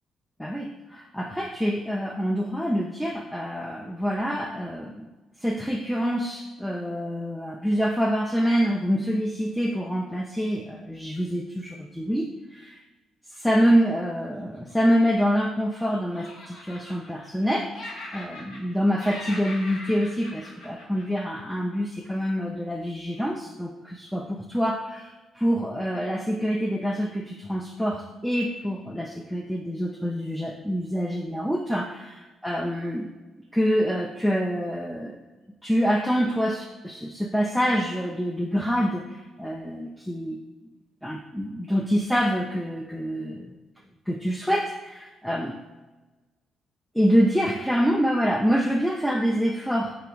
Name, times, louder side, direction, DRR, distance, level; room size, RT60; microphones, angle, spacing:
voice 1, 0.4-5.1 5.4-12.8 13.3-17.7 18.1-33.1 33.5-35.2 35.6-40.4 41.0-43.5 44.1-45.5 46.9-50.0, equal, 5° left, 1 dB, 0.4 m, -26 dB
Laughter, 14.5-15.8 16.1-17.5 17.7-18.7 19.0-21.6, left 1 dB, 80° left, 1.0 m, -41 dB
3.6 x 3.0 x 4.7 m, 1.2 s
cardioid pair, 90°, 0 cm